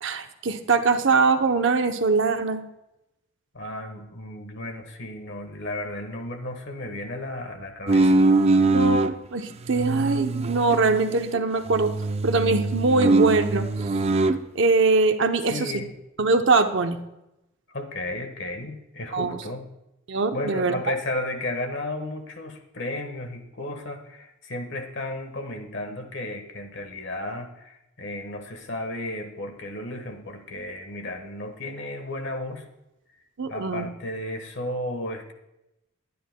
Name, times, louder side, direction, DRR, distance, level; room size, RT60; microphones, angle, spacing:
voice 1, 0.0-2.6 8.7-11.9 12.2-13.7 14.5-15.7 16.2-17.0 19.1-19.4 20.1-20.7 33.4-33.9, right 4 dB, 60° right, 7 dB, 0.7 m, -22 dB
voice 2, 3.5-8.2 15.5-15.9 17.7-19.7 20.3-32.7 33.5-35.3, left 1 dB, 60° left, 6 dB, 1.3 m, -34 dB
sound 1, 7.9-9.1 9.7-11.4 11.7-14.4, right 2 dB, 30° right, 0.4 m, -22 dB
21.5 x 10.0 x 2.2 m, 0.92 s
head